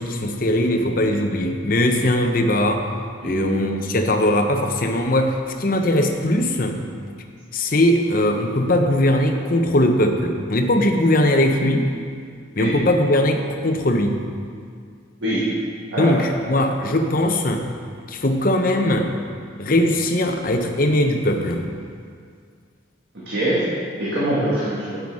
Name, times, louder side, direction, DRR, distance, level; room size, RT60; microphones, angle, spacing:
voice 1, 0.0-2.9 3.2-6.8 7.5-11.9 12.6-14.2 16.0-17.7 18.1-19.1 19.6-21.7, left 1 dB, 45° left, 4 dB, 0.8 m, -20 dB
voice 2, 3.2-3.7 12.6-12.7 15.2-15.4 15.9-16.1 16.4-16.6 23.3-23.6 24.0-25.0, right 1 dB, 60° right, -9 dB, 2.0 m, -23 dB
8.6 x 8.0 x 4.8 m, 2.1 s
head